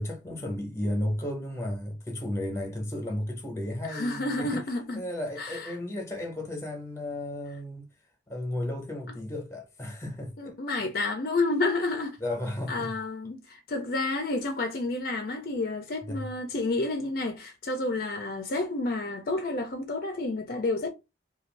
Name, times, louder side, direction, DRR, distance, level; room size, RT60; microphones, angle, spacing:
voice 1, 0.0-4.6 4.9-7.9 8.3-10.6 12.2-12.9 16.0-16.3, left 1 dB, 15° left, 0.7 m, -34 dB
voice 2, 3.9-5.0 5.4-5.7 10.4-12.2 12.7-20.9, left 2 dB, 50° left, 0.4 m, -30 dB
2.5 x 2.2 x 3.1 m
head